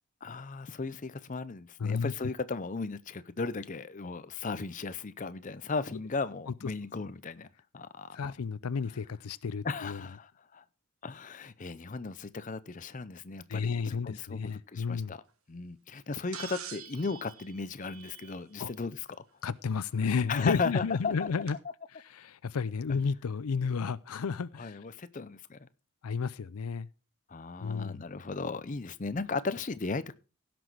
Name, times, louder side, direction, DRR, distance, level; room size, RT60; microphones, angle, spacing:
voice 1, 0.2-7.5 7.7-8.3 9.6-10.6 11.0-15.2 15.5-19.2 20.3-21.3 24.6-25.7 27.3-30.1, left 4 dB, 35° left, 0.6 m, -36 dB
voice 2, 1.8-2.1 8.1-10.0 13.5-15.1 18.6-18.7 19.4-21.6 22.1-24.8 26.0-26.9 27.6-28.0, left 5 dB, 85° left, 0.5 m, -32 dB
sound 1, 16.3-18.6 20.2-20.3 21.5-21.6, right 8 dB, 75° right, 1.6 m, -45 dB
16.5 x 6.1 x 4.6 m
head